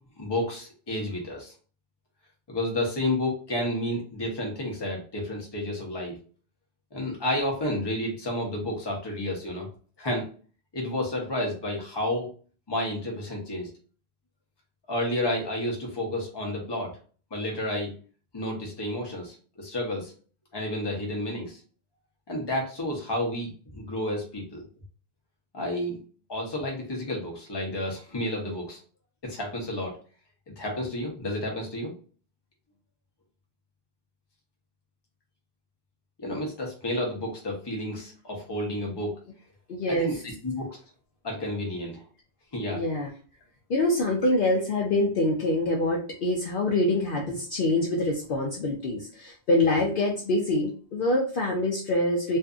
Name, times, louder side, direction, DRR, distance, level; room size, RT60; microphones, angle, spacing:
voice 1, 0.2-1.5 2.5-6.2 6.9-9.7 10.0-10.3 10.7-12.3 12.7-13.7 14.9-16.9 17.3-17.9 18.3-20.1 20.5-21.6 22.3-24.6 25.5-26.0 26.3-28.8 29.2-29.9 30.5-31.9 36.2-39.2 39.9-40.8 41.2-42.0 42.5-42.8, left 1 dB, 25° left, -1 dB, 0.7 m, -31 dB
voice 2, 39.7-40.1 42.7-43.1 43.7-52.4, left 2 dB, 60° left, -1 dB, 0.6 m, -25 dB
2.6 x 2.4 x 2.4 m, 0.40 s
omnidirectional pair, 1.1 m